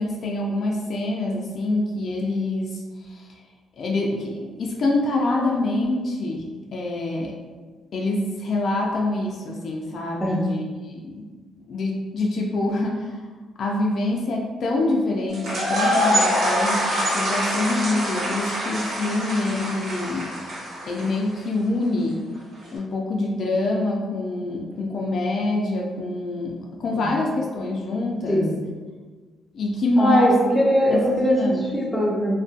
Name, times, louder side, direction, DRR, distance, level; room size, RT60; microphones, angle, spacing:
voice 1, 0.0-2.8 3.8-6.5 6.7-7.3 7.9-11.2 11.7-13.0 13.6-20.3 20.9-22.2 22.7-28.4 29.5-30.3 30.9-31.6, left 2 dB, 60° left, -1 dB, 0.4 m, -25 dB
voice 2, 10.2-10.6 26.9-27.1 28.3-28.6 30.0-32.4, equal, 5° left, -4 dB, 0.6 m, -21 dB
sound 1, 15.3-21.3, equal, 70° right, 0.8 m, -24 dB
2.5 x 2.2 x 2.4 m, 1.4 s
cardioid pair, 90°, 0 cm